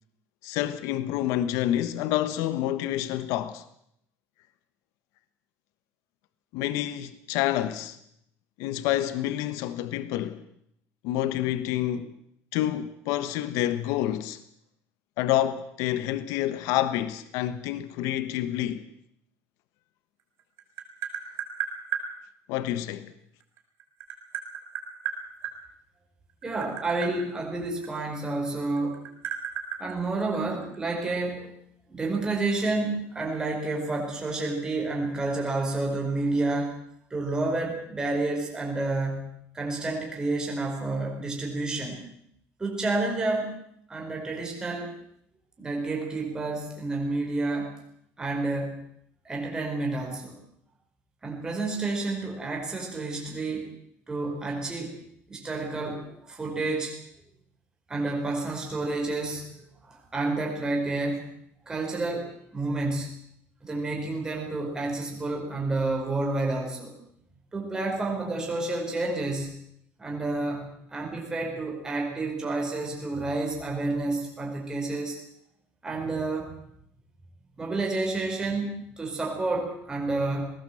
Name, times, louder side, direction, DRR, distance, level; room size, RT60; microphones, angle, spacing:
voice 1, 0.4-3.6 6.5-8.0 8.6-10.4 11.0-12.1 12.5-14.4 15.2-18.8 22.5-23.1, left 13 dB, 80° left, 1.3 m, -28 dB
Tap, 20.2-22.1 23.4-25.5 26.3-28.5 28.8-30.8, right 9 dB, 50° right, 6.0 m, -34 dB
voice 2, 26.4-29.0 29.8-31.5 31.9-36.7 37.1-39.3 39.5-42.0 42.6-43.5 43.9-44.9 45.6-47.7 48.2-48.8 49.2-50.4 51.2-53.7 54.1-54.9 55.3-56.9 57.9-61.2 61.7-63.1 63.6-66.9 67.5-69.5 70.0-75.2 75.8-76.6 77.6-80.5, right 2 dB, 15° right, 4.9 m, -30 dB
20.0 x 18.5 x 7.9 m
cardioid pair, 170°, 6 cm